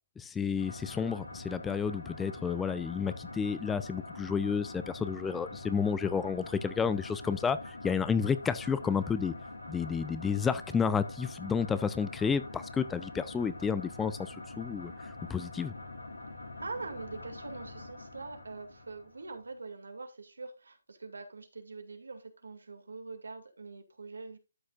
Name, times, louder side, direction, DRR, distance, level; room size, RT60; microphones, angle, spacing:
voice 1, 0.2-9.3 9.7-15.7, left 6 dB, 10° left, 0.4 m, -31 dB
sound 1, 0.6-19.4, left 2 dB, 85° left, 3.5 m, -45 dB
voice 2, 16.6-24.4, right 3 dB, 85° right, 2.1 m, -44 dB
12.5 x 6.2 x 2.4 m
hypercardioid pair, 150°, 0 cm